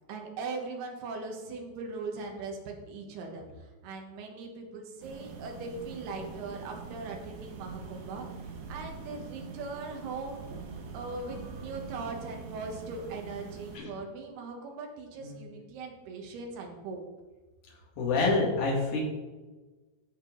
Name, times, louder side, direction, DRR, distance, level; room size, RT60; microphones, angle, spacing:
voice 1, 0.1-8.3 8.7-10.4 10.9-17.0, right 3 dB, 85° right, 2 dB, 3.4 m, -40 dB
sound 1, 5.0-13.8, right 5 dB, 65° right, 2.1 m, -44 dB
voice 2, 18.0-19.0, left 3 dB, 65° left, -3 dB, 3.8 m, -27 dB
14.0 x 5.9 x 3.9 m, 1.2 s
omnidirectional pair, 4.4 m